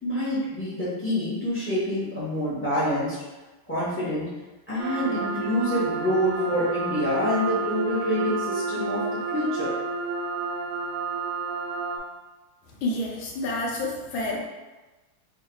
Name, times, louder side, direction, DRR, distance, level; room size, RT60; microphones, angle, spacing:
voice 1, 0.0-3.2 3.7-4.3 4.7-9.8, left 1 dB, 15° left, -10 dB, 0.4 m, -27 dB
sound 1, 4.8-12.0, right 4 dB, 85° right, 1.4 m, -30 dB
voice 2, 12.8-14.4, left 2 dB, 75° left, -2 dB, 1.5 m, -29 dB
3.6 x 2.4 x 4.5 m, 1.2 s
omnidirectional pair, 2.2 m